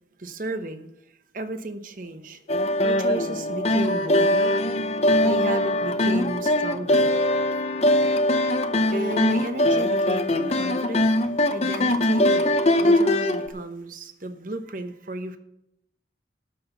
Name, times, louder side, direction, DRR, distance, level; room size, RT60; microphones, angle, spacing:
voice 1, 0.2-0.9 1.3-4.7 5.2-7.1 8.8-12.5 12.8-15.4, right 1 dB, 45° right, 8 dB, 1.0 m, -33 dB
sound 1, 2.5-13.5, left 1 dB, 35° left, 0.7 m, -22 dB
12.5 x 6.2 x 6.9 m, 0.80 s
head